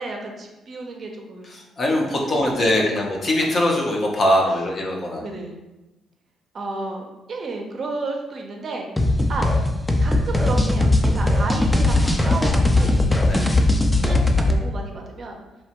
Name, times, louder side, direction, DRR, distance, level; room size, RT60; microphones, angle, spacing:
voice 1, 0.0-1.6 1.9-2.3 4.5-4.6 5.2-5.6 6.5-8.9 9.3-9.5 10.0-13.0 14.0-15.4, right 3 dB, 50° right, 1 dB, 0.5 m, -32 dB
voice 2, 1.5-5.2 13.3-13.4, left 1 dB, 45° left, -1 dB, 0.6 m, -22 dB
sound 1, 9.0-14.6, left 2 dB, 10° left, 0.3 m, -19 dB
3.0 x 2.1 x 2.8 m, 1.0 s
cardioid pair, 90°, 0 cm